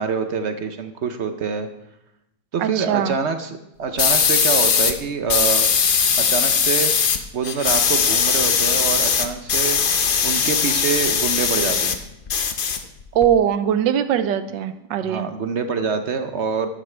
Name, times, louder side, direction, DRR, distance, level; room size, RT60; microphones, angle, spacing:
voice 1, 0.0-1.7 2.5-5.7 6.2-6.9 7.3-9.8 10.2-11.9 15.0-16.7, right 5 dB, 55° right, 8 dB, 0.7 m, -25 dB
voice 2, 2.6-3.1 13.1-15.3, right 9 dB, 85° right, 11 dB, 1.4 m, -21 dB
sound 1, 4.0-4.9 5.3-7.2 7.4-12.0 12.3-13.3, left 6 dB, 70° left, 0.5 m, -19 dB
12.0 x 11.0 x 3.3 m, 0.84 s
omnidirectional pair, 2.0 m